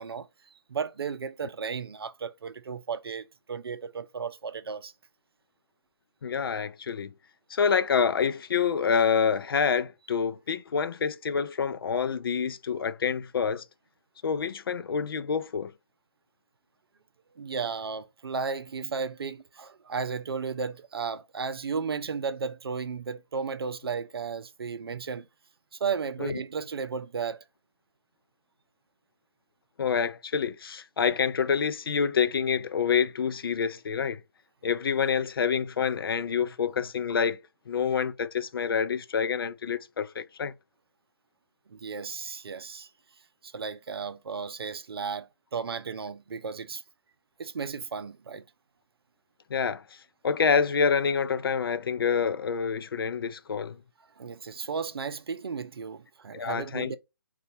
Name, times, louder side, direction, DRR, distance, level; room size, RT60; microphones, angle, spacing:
voice 1, 0.0-4.9 17.4-25.3 25.7-27.4 41.7-42.9 43.4-46.8 47.4-48.4 54.2-57.0, right 5 dB, 70° right, 0.5 m, -34 dB
voice 2, 6.2-7.1 7.5-13.6 14.2-15.7 26.2-26.4 29.8-34.2 34.6-37.4 37.7-40.5 49.5-49.8 50.2-53.8 56.3-57.0, left 6 dB, 65° left, 0.4 m, -27 dB
3.9 x 2.3 x 2.7 m
figure-of-eight pair, 145°, 13 cm